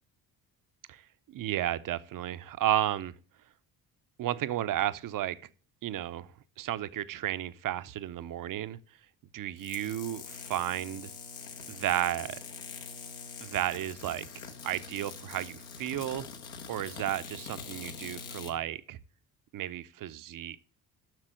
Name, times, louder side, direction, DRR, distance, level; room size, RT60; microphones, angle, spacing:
voice 1, 1.3-3.1 4.2-5.4 5.8-6.3 6.6-8.8 9.3-11.1 11.7-12.4 13.4-14.3 14.6-16.3 16.7-19.0 19.5-20.7, right 12 dB, 45° right, 0.6 m, -33 dB
sound 1, 9.6-18.5, left 5 dB, 70° left, 1.4 m, -44 dB
7.6 x 6.0 x 6.3 m
hypercardioid pair, 55°, 49 cm